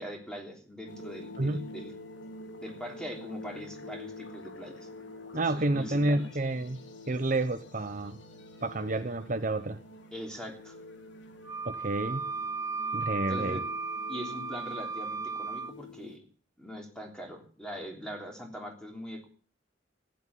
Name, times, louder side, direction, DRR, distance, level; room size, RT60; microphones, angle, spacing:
voice 1, 0.0-1.9 2.6-4.9 5.3-6.3 10.1-10.8 13.3-13.6 14.1-16.2 16.6-19.3, equal, 5° left, 2 dB, 3.3 m, -42 dB
sound 1, 0.9-16.2, left 2 dB, 70° left, 2.2 m, -47 dB
voice 2, 1.4-1.7 5.3-6.8 7.1-8.2 8.6-9.8 11.6-12.3 12.9-13.6, right 2 dB, 45° right, 9 dB, 0.9 m, -30 dB
Wind instrument woodwind instrument, 11.4-15.7, right 4 dB, 15° right, 0.7 m, -35 dB
15.0 x 9.7 x 8.3 m, 0.42 s
head